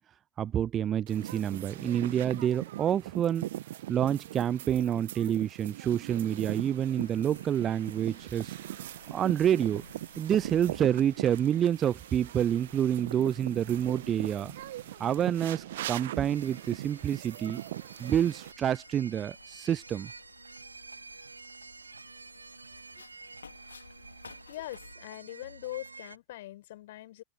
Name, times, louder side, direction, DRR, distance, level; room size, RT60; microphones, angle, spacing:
voice 1, 0.4-3.5 3.9-8.5 9.1-9.8 10.2-14.6 15.0-17.6 18.0-20.1, right 10 dB, 25° right, 0.4 m, -28 dB
sound 1, 1.1-18.5, right 14 dB, 55° right, 1.3 m, -40 dB
Wind, 7.0-24.9, left 5 dB, 75° left, 4.7 m, -56 dB
sound 2, 14.8-26.2, right 3 dB, 80° right, 3.3 m, -50 dB
voice 2, 24.5-27.2, left 15 dB, 55° left, 5.3 m, -42 dB
open air
figure-of-eight pair, 90°, 0 cm